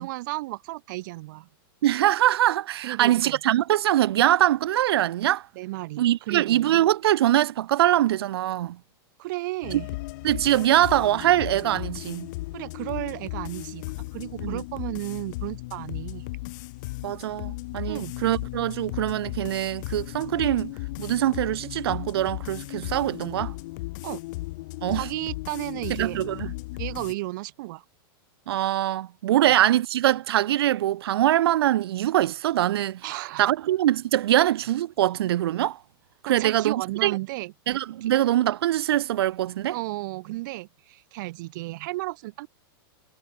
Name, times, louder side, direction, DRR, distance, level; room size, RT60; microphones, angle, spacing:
voice 1, 0.0-1.5 2.8-3.4 5.6-6.8 9.2-9.9 12.5-16.3 17.9-18.1 24.0-24.2 24.9-26.2 26.8-27.8 29.4-29.5 33.0-33.5 36.3-37.5 38.0-38.1 39.7-42.5, right 20 dB, 55° right, 7.2 m, -33 dB
voice 2, 1.8-5.5 6.0-8.8 9.7-9.8 10.2-12.3 14.4-14.6 17.0-20.7 21.0-23.5 24.8-25.1 25.9-26.5 28.5-33.0 33.4-35.8 36.2-37.2 37.7-39.8, right 13 dB, 90° right, 0.5 m, -23 dB
sound 1, 9.6-27.1, left 21 dB, 50° left, 3.0 m, -36 dB
supercardioid pair, 160°, 13 cm